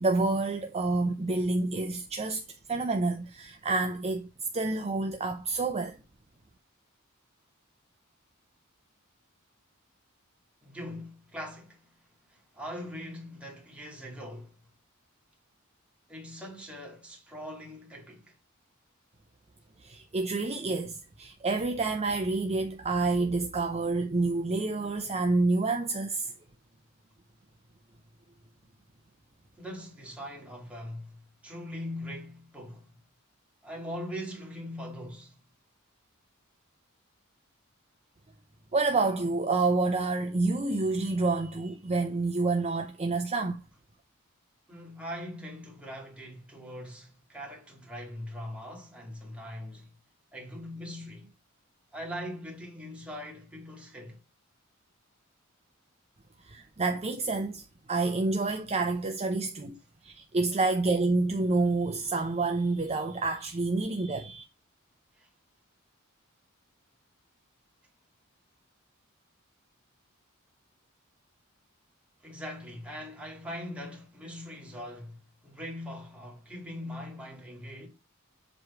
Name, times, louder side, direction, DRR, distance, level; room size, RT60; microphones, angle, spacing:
voice 1, 0.0-2.4 2.7-6.0 19.8-26.3 38.7-43.6 56.4-57.6 57.9-59.8 60.0-64.4, right 3 dB, 30° right, 0.6 m, -28 dB
voice 2, 10.6-11.8 12.3-14.5 16.1-18.3 29.6-32.9 33.6-35.4 44.7-49.9 50.3-51.3 51.9-54.2 65.2-65.3 72.2-77.9, equal, 5° right, 2.1 m, -41 dB
7.7 x 3.2 x 4.7 m
head